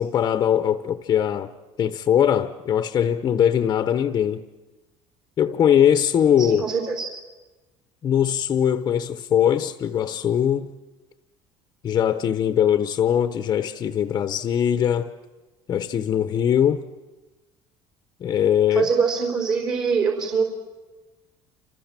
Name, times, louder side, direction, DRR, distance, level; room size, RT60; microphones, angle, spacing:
voice 1, 0.0-1.5 1.8-4.4 5.4-6.7 8.0-10.7 11.8-15.1 15.7-16.8 18.2-18.9, left 9 dB, 30° left, 0.9 m, -21 dB
voice 2, 6.4-7.1 18.7-20.5, right 5 dB, 40° right, 3.9 m, -23 dB
29.0 x 26.5 x 7.5 m
cardioid pair, 160°, 11 cm